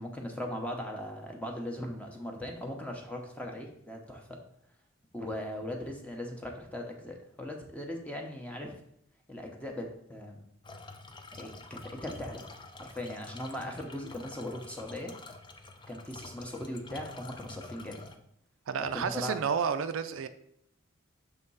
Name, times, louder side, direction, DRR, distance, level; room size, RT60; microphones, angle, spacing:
voice 1, 0.0-4.4 5.1-8.7 9.3-10.4 11.3-12.5 12.8-15.1 15.9-18.1 18.8-19.4, left 1 dB, 5° left, 2 dB, 0.8 m, -39 dB
sound 1, 10.6-18.2, left 3 dB, 20° left, 0.4 m, -48 dB
voice 2, 18.7-20.3, right 6 dB, 70° right, 10 dB, 0.4 m, -31 dB
6.2 x 3.6 x 5.5 m, 0.70 s
head